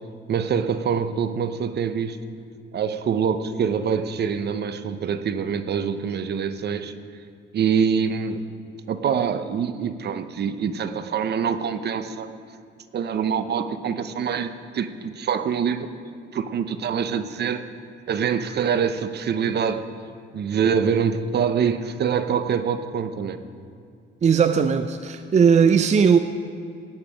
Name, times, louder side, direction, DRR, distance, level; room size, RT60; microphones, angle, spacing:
voice 1, 0.3-2.2 2.7-6.9 7.5-8.4 8.9-12.3 12.9-15.9 16.3-17.6 18.1-19.8 20.3-23.4, right 7 dB, 55° right, 11 dB, 0.8 m, -25 dB
voice 2, 24.2-26.2, right 6 dB, 35° right, 10 dB, 0.5 m, -18 dB
17.0 x 9.6 x 5.1 m, 2.4 s
cardioid pair, 90°, 20 cm